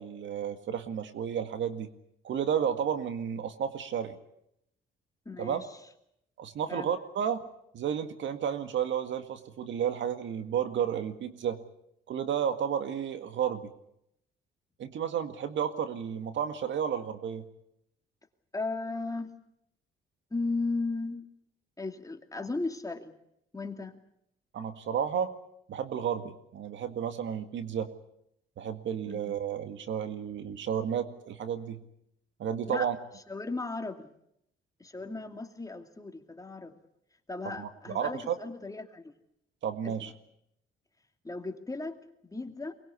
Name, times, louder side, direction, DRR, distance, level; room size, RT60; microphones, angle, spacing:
voice 1, 0.0-1.9 2.2-4.2 5.4-5.6 6.4-7.4 7.7-11.6 12.1-13.7 14.8-17.4 24.5-25.3 25.7-27.9 28.6-31.8 32.4-33.0 37.5-38.4 39.6-40.1, right 8 dB, 70° right, 9 dB, 1.9 m, -32 dB
voice 2, 5.3-5.7 6.7-6.9 18.5-19.3 20.3-21.2 21.8-23.1 23.5-24.0 29.1-29.2 32.7-32.9 33.3-34.1 34.8-36.8 37.3-39.1 39.8-39.9 41.2-42.7, left 3 dB, 15° left, 5 dB, 2.5 m, -36 dB
23.5 x 21.0 x 8.4 m, 0.77 s
cardioid pair, 90°, 20 cm